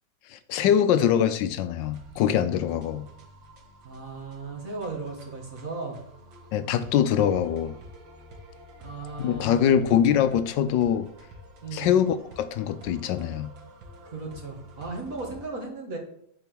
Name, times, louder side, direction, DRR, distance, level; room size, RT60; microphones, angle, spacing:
voice 1, 0.3-3.1 6.5-7.8 9.2-11.1 11.7-13.5, left 9 dB, 80° left, 12 dB, 1.3 m, -23 dB
sound 1, 1.8-15.5, equal, 90° right, 2.1 m, -49 dB
voice 2, 3.8-6.0 8.8-9.8 11.6-12.0 14.1-16.0, right 3 dB, 45° right, 0 dB, 2.3 m, -36 dB
9.2 x 4.9 x 6.1 m, 0.70 s
omnidirectional pair, 2.0 m